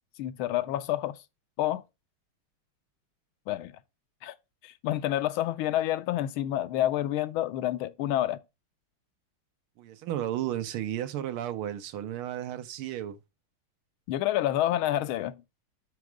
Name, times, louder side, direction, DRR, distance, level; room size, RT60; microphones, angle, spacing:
voice 1, 0.2-1.2 1.6-1.8 3.5-3.7 4.2-4.3 4.6-8.4 14.1-15.4, left 13 dB, 80° left, 1.4 m, -28 dB
voice 2, 9.8-13.2, right 11 dB, 90° right, 1.7 m, -33 dB
6.0 x 5.2 x 4.6 m
omnidirectional pair, 2.3 m